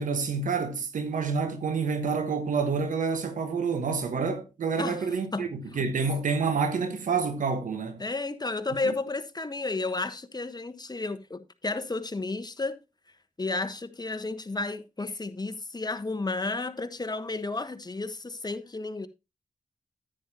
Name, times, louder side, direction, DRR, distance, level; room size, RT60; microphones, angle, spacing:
voice 1, 0.0-8.0 8.8-8.9, right 5 dB, 85° right, 1.2 m, -28 dB
voice 2, 8.0-12.8 13.4-19.1, left 3 dB, 30° left, 1.1 m, -32 dB
10.0 x 9.0 x 2.8 m
cardioid pair, 40°, 13 cm